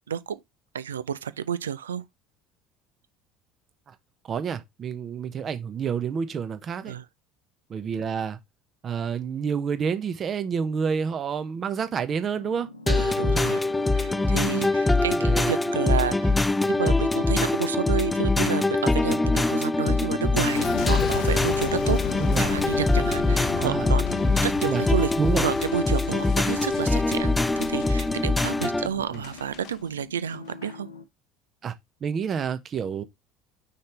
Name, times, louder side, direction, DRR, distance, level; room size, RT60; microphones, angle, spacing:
voice 1, 0.1-0.4 0.7-2.0 6.8-7.0 12.9-13.6 13.9-16.4 16.7-22.0 22.4-24.0 24.4-25.1 25.4-30.9, right 8 dB, 75° right, 0.4 m, -30 dB
voice 2, 4.3-7.0 7.7-8.4 8.8-12.7 13.3-13.5 15.1-15.6 22.2-22.5 23.6-23.9 24.7-24.8 25.2-25.5 28.8-29.2 31.6-31.7 32.0-33.0, right 6 dB, 35° right, 0.9 m, -29 dB
sound 1, 12.3-31.0, left 3 dB, 80° left, 0.8 m, -45 dB
sound 2, 12.9-28.9, left 2 dB, 10° left, 0.3 m, -23 dB
Boom, 20.4-29.8 30.3-30.8, left 8 dB, 50° left, 0.7 m, -34 dB
5.6 x 5.4 x 3.2 m
figure-of-eight pair, 65°, 0 cm